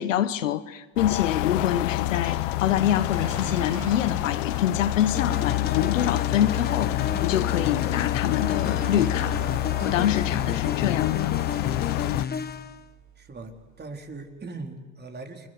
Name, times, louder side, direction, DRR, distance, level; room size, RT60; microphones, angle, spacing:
voice 1, 0.0-9.4 9.8-11.1, left 10 dB, 90° left, 1.2 m, -26 dB
sound 1, 1.0-12.2, left 20 dB, 75° left, 0.8 m, -27 dB
sound 2, 1.1-14.2, right 5 dB, 50° right, 4.4 m, -44 dB
sound 3, 5.1-12.8, left 6 dB, 25° left, 1.5 m, -32 dB
voice 2, 13.2-15.5, right 3 dB, 25° right, 4.0 m, -40 dB
29.0 x 22.0 x 8.1 m
hypercardioid pair, 80°, 37 cm